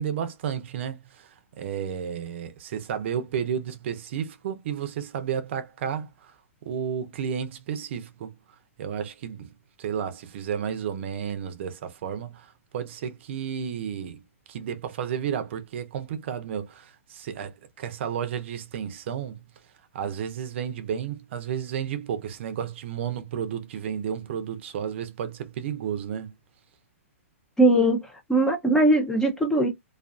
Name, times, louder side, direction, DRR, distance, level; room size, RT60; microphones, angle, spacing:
voice 1, 0.0-6.3 6.6-8.3 8.8-9.5 9.8-14.2 14.5-19.4 19.9-26.3, right 8 dB, 55° right, 0.6 m, -32 dB
voice 2, 27.6-28.0 28.3-29.7, right 1 dB, 5° left, 0.5 m, -20 dB
2.4 x 2.4 x 2.3 m
hypercardioid pair, 150°, 8 cm